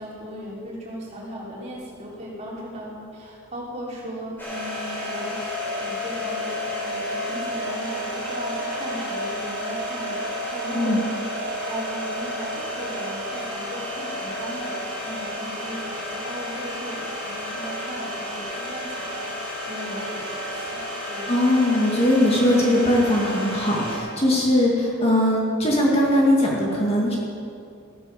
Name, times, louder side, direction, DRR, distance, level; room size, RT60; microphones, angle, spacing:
voice 1, 0.0-11.1 11.6-21.3, equal, 30° right, -5 dB, 3.7 m, -37 dB
sound 1, 4.4-24.0, left 1 dB, 10° left, 4.6 m, -31 dB
voice 2, 10.7-11.0 21.3-27.2, left 1 dB, 30° left, -3 dB, 2.1 m, -20 dB
16.0 x 10.0 x 7.0 m, 2.5 s
head